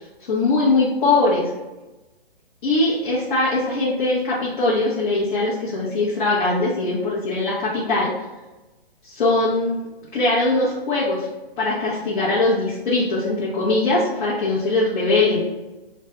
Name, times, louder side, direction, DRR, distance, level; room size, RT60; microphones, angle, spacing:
voice 1, 0.0-1.5 2.6-8.1 9.0-9.9 10.1-11.3 11.6-15.4, left 2 dB, 45° left, -8 dB, 0.9 m, -21 dB
3.2 x 2.2 x 2.9 m, 1.1 s
hypercardioid pair, 135°, 31 cm